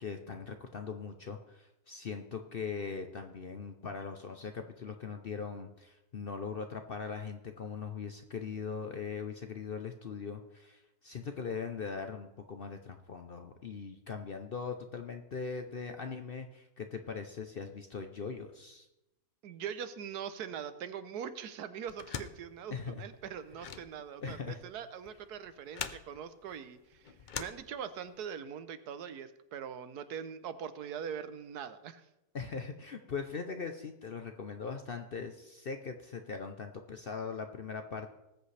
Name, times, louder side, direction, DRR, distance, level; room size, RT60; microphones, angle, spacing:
voice 1, 0.0-18.9 22.7-23.0 24.2-24.6 32.3-38.1, left 5 dB, 50° left, 6 dB, 0.7 m, -40 dB
voice 2, 19.4-32.1, right 8 dB, 80° right, 12 dB, 1.3 m, -42 dB
sound 1, 21.9-28.2, left 7 dB, 85° left, 0.4 m, -45 dB
19.5 x 8.1 x 3.3 m, 0.92 s
omnidirectional pair, 1.7 m